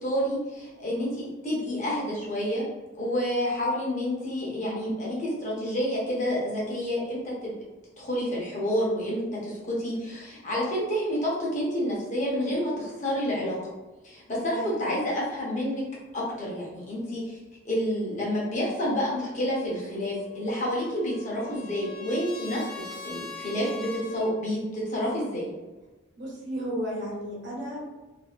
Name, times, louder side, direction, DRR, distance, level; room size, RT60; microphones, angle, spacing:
voice 1, 0.0-2.6 2.9-7.6 8.0-13.6 14.0-15.8 16.1-17.4 17.6-22.6 23.0-25.5, equal, 35° left, -5 dB, 0.9 m, -29 dB
voice 2, 14.5-14.9 26.2-27.8, equal, 55° right, -5 dB, 1.0 m, -33 dB
Trumpet, 20.4-24.3, left 4 dB, 5° left, 0.4 m, -42 dB
2.7 x 2.6 x 2.5 m, 1.1 s
head